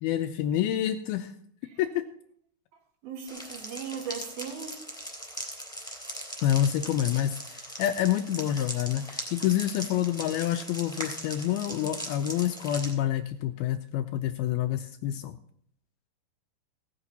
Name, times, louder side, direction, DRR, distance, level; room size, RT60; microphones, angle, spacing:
voice 1, 0.0-1.3 1.8-1.9 6.4-15.4, left 11 dB, 80° left, 8 dB, 2.3 m, -28 dB
voice 2, 3.0-4.8, right 7 dB, 65° right, 2 dB, 3.4 m, -38 dB
sound 1, 3.3-12.9, equal, ahead, 2.7 m, -39 dB
17.0 x 8.9 x 4.1 m, 0.63 s
omnidirectional pair, 4.8 m